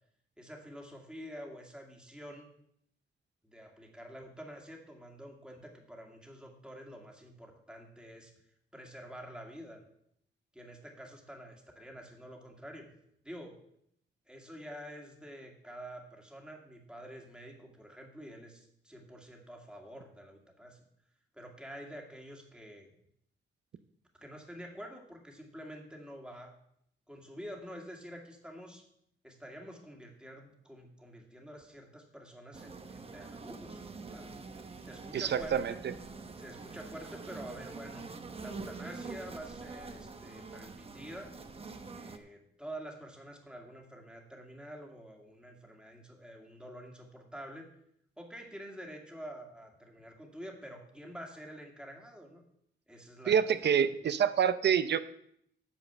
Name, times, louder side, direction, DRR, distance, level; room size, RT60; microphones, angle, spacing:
voice 1, 0.4-2.5 3.4-8.3 8.7-9.8 10.5-12.9 13.2-13.6 14.3-20.8 21.3-22.9 24.2-26.5 27.1-28.9 29.2-34.4 34.8-35.8 36.4-38.0 38.4-41.3 41.9-47.7 48.2-52.4 52.9-54.0, equal, 5° right, 1 dB, 1.9 m, -48 dB
sound 1, 32.5-42.2, right 4 dB, 30° right, 0.8 m, -45 dB
voice 2, 35.1-35.7 53.3-55.0, right 8 dB, 60° right, 13 dB, 0.7 m, -27 dB
8.7 x 7.4 x 6.8 m, 0.71 s
wide cardioid pair, 140°, 20 cm